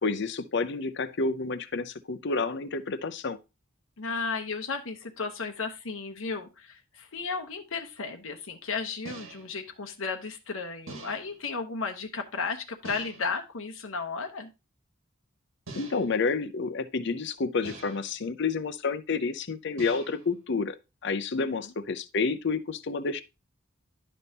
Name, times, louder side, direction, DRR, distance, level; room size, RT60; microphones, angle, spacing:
voice 1, 0.0-3.4 15.7-20.8 21.0-23.2, left 4 dB, 60° left, 0.7 m, -29 dB
voice 2, 4.0-14.5 21.4-21.7, left 4 dB, 80° left, 1.0 m, -34 dB
sound 1, 7.2-7.3 9.0-9.6 10.9-11.5 12.8-13.4 15.7-16.3 17.6-18.2 19.8-20.4, right 3 dB, 85° right, 1.9 m, -45 dB
11.0 x 5.3 x 2.8 m
head